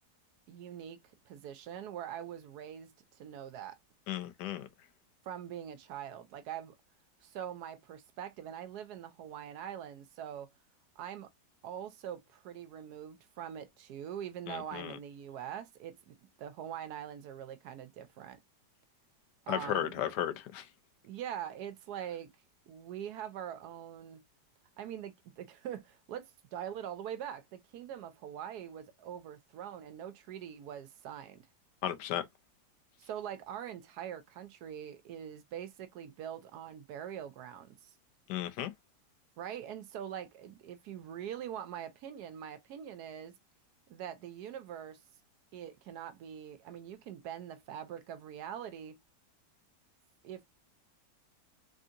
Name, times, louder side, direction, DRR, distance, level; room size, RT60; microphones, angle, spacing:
voice 1, 0.5-1.0 1.3-3.8 5.2-6.7 7.2-10.5 11.0-11.3 11.6-18.4 19.5-20.0 21.0-22.3 22.7-24.2 24.8-31.4 33.0-37.9 39.4-43.3 43.9-45.0 45.5-49.0 50.2-50.4, right 9 dB, 75° right, 1.0 m, -43 dB
voice 2, 4.1-4.7 14.5-15.0 19.5-20.7 31.8-32.2 38.3-38.7, left 11 dB, 75° left, 1.1 m, -34 dB
3.5 x 2.7 x 2.4 m
omnidirectional pair, 1.9 m